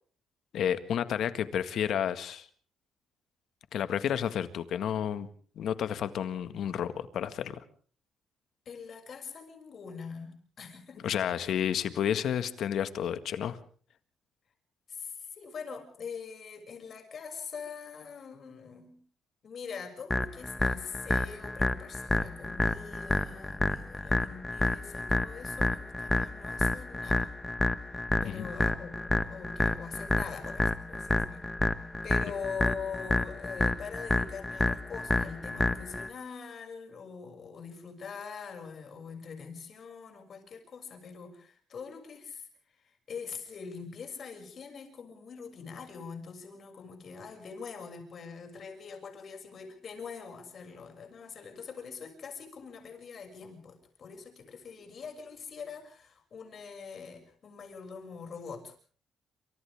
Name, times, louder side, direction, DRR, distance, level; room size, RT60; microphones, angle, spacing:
voice 1, 0.5-2.5 3.7-5.3 5.6-7.6 11.0-13.6 28.2-28.5, left 9 dB, 70° left, 11 dB, 1.8 m, -31 dB
voice 2, 8.7-11.1 11.4-11.5 14.9-19.0 19.4-27.4 28.0-31.4 31.7-42.5 42.8-58.8, left 5 dB, 55° left, 4 dB, 6.8 m, -43 dB
sound 1, 20.1-36.1, left 2 dB, 15° left, 1.2 m, -29 dB
28.0 x 26.5 x 3.6 m, 0.44 s
cardioid pair, 90°, 0 cm